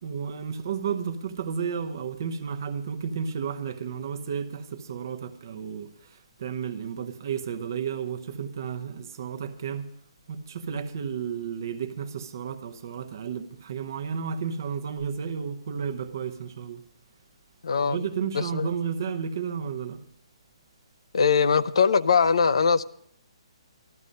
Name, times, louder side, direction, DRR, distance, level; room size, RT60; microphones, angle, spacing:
voice 1, 0.0-9.9 10.3-16.8 17.8-20.0, right 7 dB, 35° right, 0.8 m, -32 dB
voice 2, 17.6-18.0 18.3-18.7 21.1-22.8, left 5 dB, 65° left, 0.5 m, -21 dB
13.5 x 12.5 x 5.2 m
hypercardioid pair, 180°, 3 cm